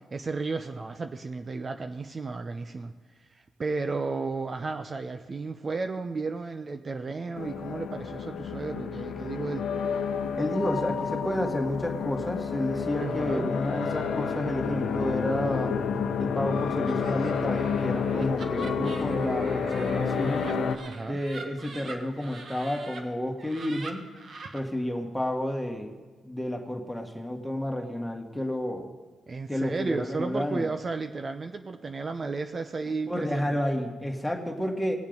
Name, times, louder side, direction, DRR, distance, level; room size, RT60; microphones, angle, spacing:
voice 1, 0.1-2.9 3.2-9.7 13.0-13.5 20.8-21.2 29.3-33.6, right 4 dB, 40° right, 7 dB, 0.7 m, -33 dB
sound 1, 7.4-20.8, left 6 dB, 75° left, 0.8 m, -30 dB
voice 2, 10.4-15.8 16.2-20.5 21.1-24.1 24.5-25.9 26.2-28.9 29.5-30.7 33.1-35.0, equal, 5° left, 2 dB, 1.9 m, -30 dB
Laughter, 16.8-23.0 23.4-24.6, right 4 dB, 60° right, 1.4 m, -44 dB
19.0 x 7.2 x 5.3 m, 1.3 s
cardioid pair, 65°, 0 cm